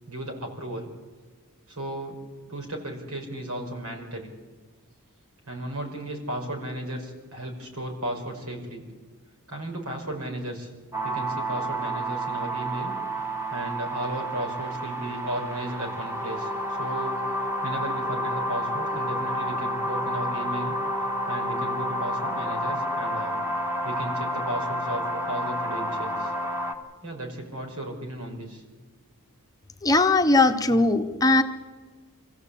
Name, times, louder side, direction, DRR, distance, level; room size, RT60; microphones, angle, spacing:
voice 1, 0.1-0.9 1.7-2.2 2.5-4.3 5.5-8.9 9.5-10.7 11.0-13.0 13.5-17.2 17.6-20.7 21.3-23.4 23.8-26.3 27.0-28.6, right 1 dB, 75° right, 2 dB, 5.1 m, -35 dB
sound 1, 10.9-26.7, equal, 10° right, 1.7 m, -30 dB
voice 2, 29.8-31.4, left 2 dB, 15° left, 6 dB, 1.0 m, -19 dB
25.5 x 15.5 x 8.5 m, 1.4 s
head